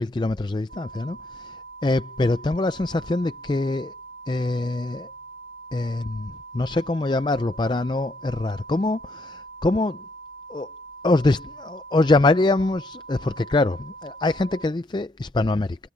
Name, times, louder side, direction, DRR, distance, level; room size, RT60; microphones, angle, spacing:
voice 1, 0.0-1.5 1.8-3.9 4.3-5.1 5.7-10.0 10.5-10.7 11.0-15.8, left 2 dB, 25° left, 0.4 m, -24 dB
sound 1, 0.7-14.7, right 4 dB, 75° right, 4.8 m, -42 dB
head